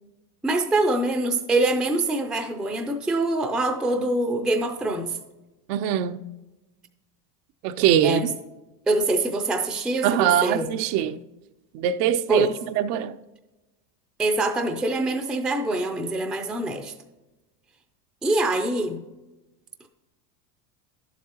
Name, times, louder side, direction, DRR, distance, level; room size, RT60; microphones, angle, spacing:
voice 1, 0.4-5.2 8.0-8.3 8.9-10.7 12.3-12.5 14.2-16.9 18.2-19.0, right 2 dB, ahead, 0.3 m, -24 dB
voice 2, 5.7-6.2 7.6-8.3 10.0-11.2 11.7-12.5 12.8-13.2, right 10 dB, 75° right, 0.6 m, -22 dB
11.0 x 7.4 x 2.9 m
supercardioid pair, 120°, 47 cm